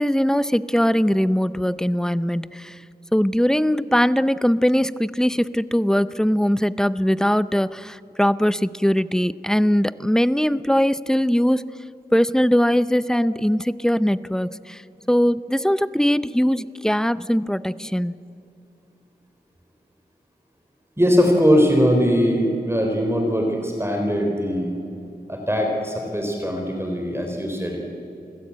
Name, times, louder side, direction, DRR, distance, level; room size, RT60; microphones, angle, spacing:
voice 1, 0.0-2.8 3.1-11.8 12.1-14.8 15.1-18.1, equal, 5° left, 16 dB, 0.6 m, -21 dB
voice 2, 21.0-24.7 25.3-27.8, equal, 15° right, 2 dB, 3.7 m, -21 dB
28.0 x 16.5 x 8.7 m, 2.7 s
wide cardioid pair, 60°, 17 cm